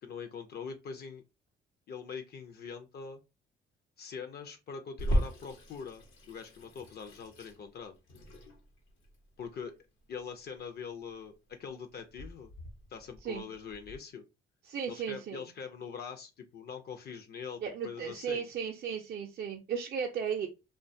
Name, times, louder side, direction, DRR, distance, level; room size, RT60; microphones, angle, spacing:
voice 1, 0.0-1.2 1.9-3.2 4.0-7.9 9.4-9.7 10.1-12.5 12.9-14.2 14.9-18.5, left 6 dB, 55° left, 6 dB, 0.4 m, -43 dB
Water tap faucet / Sink (filling or washing), 5.0-14.0, equal, 90° left, 0.8 m, -38 dB
voice 2, 14.7-15.4 17.6-20.5, right 7 dB, 55° right, 1 dB, 0.4 m, -35 dB
2.4 x 2.2 x 2.6 m, 0.27 s
cardioid pair, 90°, 20 cm